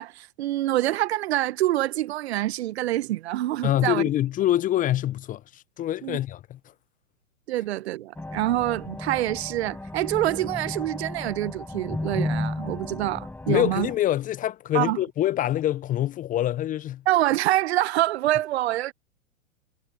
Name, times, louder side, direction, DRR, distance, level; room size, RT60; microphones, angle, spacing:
voice 1, 0.0-4.0 6.0-6.2 7.5-13.9 14.7-15.0 17.1-18.9, right 15 dB, 55° right, 1.1 m, -26 dB
voice 2, 3.6-6.6 13.5-17.0, left 12 dB, 20° left, 0.8 m, -25 dB
sound 1, 8.2-14.0, left 2 dB, 5° left, 6.2 m, -34 dB
hypercardioid pair, 110°, 38 cm